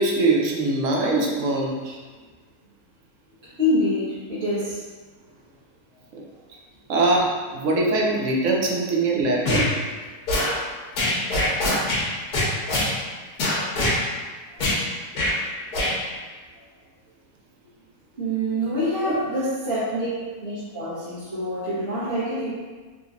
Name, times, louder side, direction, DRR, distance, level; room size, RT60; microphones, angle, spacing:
voice 1, 0.0-2.0 6.1-6.2 6.9-9.7 19.1-19.2, right 2 dB, 65° right, -1 dB, 0.8 m, -22 dB
voice 2, 3.4-4.8 14.5-14.6 18.1-22.5, equal, 45° right, -13 dB, 1.2 m, -26 dB
sound 1, 9.4-9.7 10.3-10.5 11.0-12.0 12.3-12.9 13.4-14.0 14.6-14.8 15.1-15.3 15.7-15.9, left 1 dB, 90° left, 1.4 m, -22 dB
3.8 x 2.9 x 2.4 m, 1.4 s
omnidirectional pair, 1.7 m